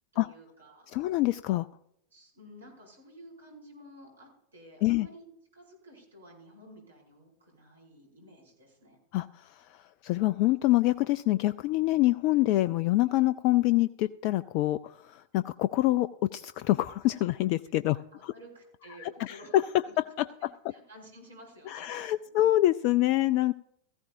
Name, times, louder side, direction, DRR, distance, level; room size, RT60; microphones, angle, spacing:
voice 1, 0.1-1.0 2.1-5.3 5.5-9.0 18.1-19.6 19.9-20.0 20.7-22.5, equal, 75° right, -1 dB, 6.1 m, -52 dB
voice 2, 0.9-1.7 4.8-5.1 9.1-18.3 19.0-19.6 20.0-20.3 21.7-23.5, left 16 dB, 45° left, 16 dB, 0.3 m, -26 dB
17.5 x 15.0 x 2.6 m, 0.76 s
figure-of-eight pair, 90°, 0 cm